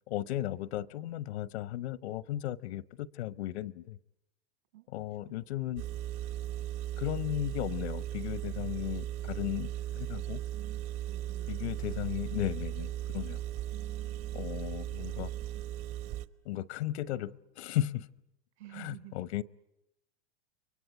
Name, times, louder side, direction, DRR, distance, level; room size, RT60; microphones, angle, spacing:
voice 1, 0.1-4.0 4.9-5.8 7.0-10.4 11.5-13.4 14.3-15.3 16.4-18.1 18.8-19.4, left 13 dB, 70° left, 0.9 m, -35 dB
voice 2, 4.7-5.4 10.5-12.3 13.7-15.7 18.6-19.2, right 15 dB, 75° right, 7.0 m, -53 dB
Engine, 5.8-16.3, right 12 dB, 45° right, 1.1 m, -37 dB
29.5 x 23.0 x 8.1 m
supercardioid pair, 135°, 34 cm